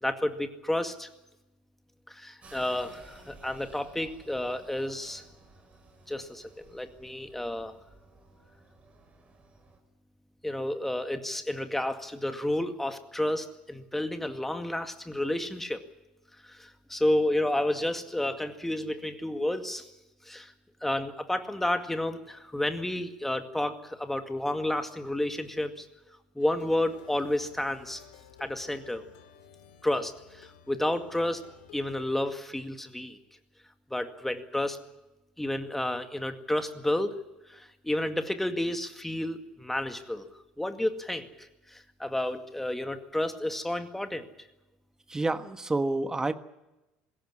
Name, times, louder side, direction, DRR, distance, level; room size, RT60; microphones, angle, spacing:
voice 1, 0.0-1.1 2.1-5.2 6.1-7.7 10.4-15.8 16.5-19.9 20.3-20.5 20.8-25.9 26.4-28.0 28.4-29.0 29.8-31.4 31.7-33.2 33.9-34.8 35.4-37.2 37.5-40.3 40.6-41.3 41.7-44.3, left 1 dB, 5° left, 7 dB, 2.1 m, -31 dB
sound 1, 2.4-9.8, right 2 dB, 35° right, 6.7 m, -55 dB
Plucked string instrument, 26.4-32.2, left 8 dB, 75° left, 2.4 m, -54 dB
voice 2, 45.1-46.3, right 2 dB, 15° right, 11 dB, 1.4 m, -28 dB
21.0 x 17.0 x 10.0 m, 1.0 s
hypercardioid pair, 70°, 4 cm